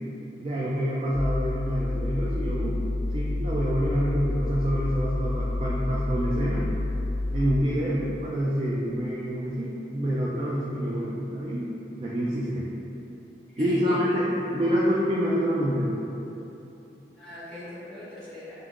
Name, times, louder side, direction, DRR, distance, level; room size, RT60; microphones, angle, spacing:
voice 1, 0.4-2.7 3.1-6.7 7.3-11.7 12.0-12.6 13.6-14.3 14.5-15.9, equal, 30° right, -6 dB, 0.4 m, -27 dB
sound 1, 1.1-7.6, left 2 dB, 90° left, 0.6 m, -29 dB
voice 2, 13.5-14.2 17.2-18.5, left 1 dB, 5° left, -14 dB, 1.1 m, -41 dB
5.1 x 2.8 x 2.5 m, 2.9 s
head